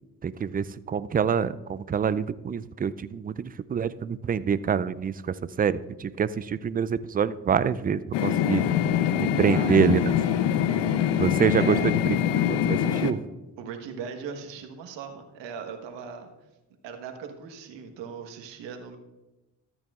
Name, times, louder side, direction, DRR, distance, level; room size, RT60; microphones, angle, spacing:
voice 1, 0.2-8.6 9.2-10.1 11.2-13.2, right 7 dB, 20° right, 15 dB, 0.4 m, -26 dB
sound 1, 8.1-13.1, left 9 dB, 70° left, 0.8 m, -24 dB
voice 2, 9.4-10.0 11.0-11.3 11.5-12.0 12.7-12.8 13.6-16.3 16.8-19.0, right 6 dB, 75° right, 5 dB, 1.4 m, -38 dB
14.0 x 8.7 x 2.4 m, 1.0 s
hypercardioid pair, 55°, 44 cm